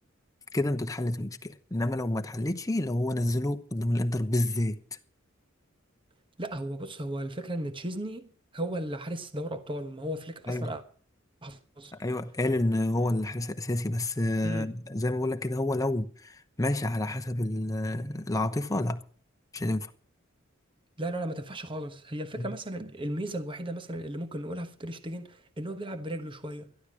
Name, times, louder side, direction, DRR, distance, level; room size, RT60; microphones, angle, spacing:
voice 1, 0.5-4.8 10.5-10.7 12.0-19.0 19.5-19.9 22.4-22.5, left 1 dB, 15° left, 0.9 m, -29 dB
voice 2, 6.4-8.3 8.5-10.8 11.4-11.9 14.4-14.7 21.0-26.7, right 1 dB, 25° right, 1.1 m, -35 dB
13.5 x 11.5 x 6.2 m
head